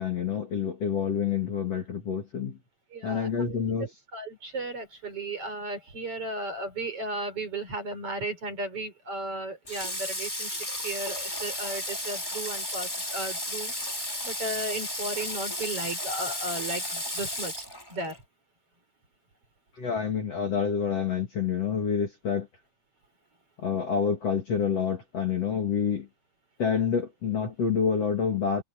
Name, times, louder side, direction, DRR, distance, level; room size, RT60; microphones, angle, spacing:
voice 1, 0.0-2.6 3.0-3.9 19.8-22.5 23.6-26.1 26.6-28.6, left 6 dB, 40° left, 3.3 m, -28 dB
voice 2, 2.9-3.6 4.1-13.7 14.2-18.2, right 2 dB, 35° right, 5.1 m, -35 dB
Water / Water tap faucet, 9.7-18.2, left 1 dB, 5° left, 4.3 m, -33 dB
omnidirectional pair, 4.8 m